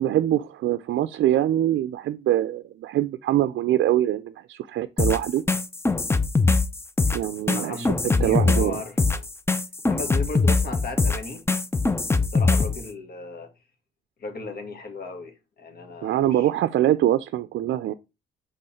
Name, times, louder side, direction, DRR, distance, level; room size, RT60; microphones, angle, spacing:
voice 1, 0.0-5.4 7.1-7.9 8.2-8.8 16.0-17.9, right 12 dB, 70° right, 0.4 m, -23 dB
sound 1, 5.0-12.8, left 3 dB, 10° left, 0.5 m, -22 dB
voice 2, 7.5-9.3 9.9-11.4 12.3-13.5 14.2-16.5, left 3 dB, 50° left, 1.7 m, -36 dB
5.4 x 3.6 x 5.7 m
cardioid pair, 90°, 20 cm